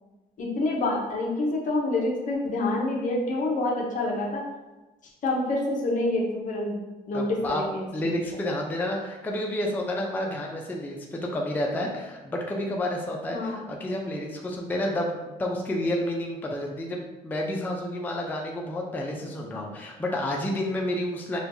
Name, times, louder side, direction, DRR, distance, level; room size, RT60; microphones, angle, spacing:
voice 1, 0.4-4.4 5.2-6.8 7.1-7.8 13.3-13.6, left 2 dB, 50° left, -2 dB, 0.7 m, -27 dB
voice 2, 7.1-7.6 7.9-21.4, left 1 dB, 10° left, 0 dB, 0.4 m, -30 dB
4.4 x 2.2 x 2.6 m, 1.1 s
cardioid pair, 110°, 17 cm